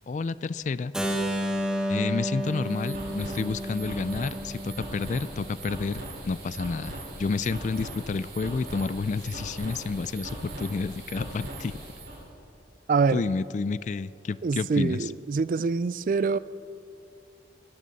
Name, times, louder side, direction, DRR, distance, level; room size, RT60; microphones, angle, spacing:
voice 1, 0.1-0.9 1.9-11.8 13.1-15.1, left 4 dB, 40° left, 17 dB, 0.3 m, -30 dB
Keyboard (musical), 0.9-6.8, equal, 5° right, 1.5 m, -32 dB
sound 1, 2.4-12.2, right 1 dB, 70° right, 4.5 m, -40 dB
voice 2, 12.9-13.2 14.4-16.4, right 4 dB, 45° right, 17 dB, 0.3 m, -25 dB
23.5 x 14.0 x 4.1 m, 2.6 s
head